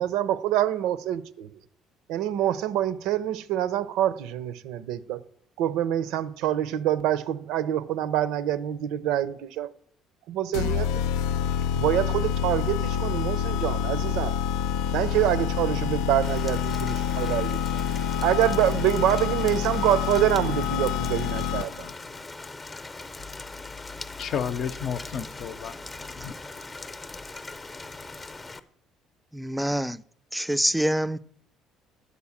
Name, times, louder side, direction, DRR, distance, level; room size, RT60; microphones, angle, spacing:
voice 1, 0.0-1.6 2.1-5.2 5.6-9.7 10.3-10.9 11.7-14.3 14.9-17.6 18.2-21.9, right 12 dB, 80° right, 0.5 m, -26 dB
sound 1, 10.5-21.9, left 8 dB, 85° left, 0.3 m, -27 dB
Rain, 16.2-28.6, left 3 dB, 25° left, 0.7 m, -41 dB
voice 2, 24.2-26.3, left 7 dB, 60° left, 0.7 m, -32 dB
voice 3, 29.3-30.0 30.3-31.2, right 1 dB, 5° right, 0.4 m, -25 dB
11.0 x 4.1 x 7.2 m
supercardioid pair, 80°, 0 cm